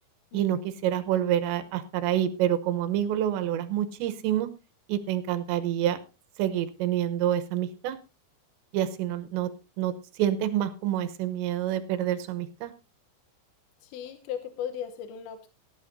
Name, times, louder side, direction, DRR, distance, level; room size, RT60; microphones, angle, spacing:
voice 1, 0.3-4.5 4.9-6.0 6.4-8.0 8.7-9.5 9.8-9.9 10.2-12.7, right 11 dB, 85° right, 10 dB, 3.2 m, -27 dB
voice 2, 13.8-15.5, left 9 dB, 80° left, 7 dB, 3.2 m, -36 dB
18.0 x 11.0 x 2.6 m, 0.29 s
omnidirectional pair, 5.1 m